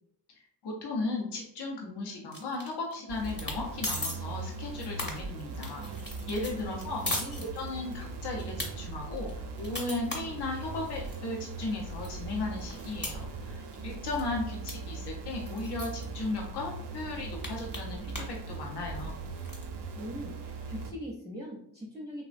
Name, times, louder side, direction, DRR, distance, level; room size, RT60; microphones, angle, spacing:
voice 1, 0.4-5.9 6.3-7.0 7.4-19.2, left 2 dB, 75° left, -1 dB, 0.6 m, -36 dB
sound 1, 2.3-2.9 3.2-3.6 3.8-4.2 4.6-8.0 8.4-8.7 9.2-11.2 11.6-11.7 12.0-13.8 14.1-14.3 14.7-14.8 15.0-15.1 15.5-16.0 16.6-16.7 17.0-18.4 18.7-19.6, left 2 dB, 25° left, 0.8 m, -38 dB
sound 2, 3.1-20.9, right 3 dB, 75° right, 0.5 m, -40 dB
voice 2, 7.0-7.5 20.0-22.2, equal, 10° right, -3 dB, 0.5 m, -41 dB
3.2 x 2.1 x 2.4 m, 0.71 s
wide cardioid pair, 100°, 41 cm